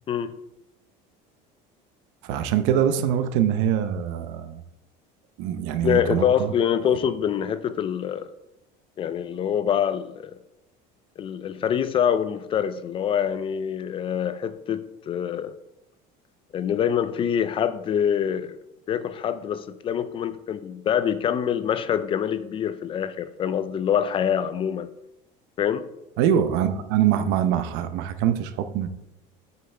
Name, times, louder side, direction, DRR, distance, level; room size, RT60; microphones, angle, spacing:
voice 1, 2.2-4.6 5.4-6.5 26.2-28.9, right 9 dB, 70° right, 0.8 m, -23 dB
voice 2, 5.8-8.3 9.0-10.3 11.2-15.5 16.5-18.6 18.9-24.9 25.6-25.9, left 8 dB, 25° left, 0.4 m, -25 dB
8.3 x 5.7 x 4.4 m
cardioid pair, 165°, 19 cm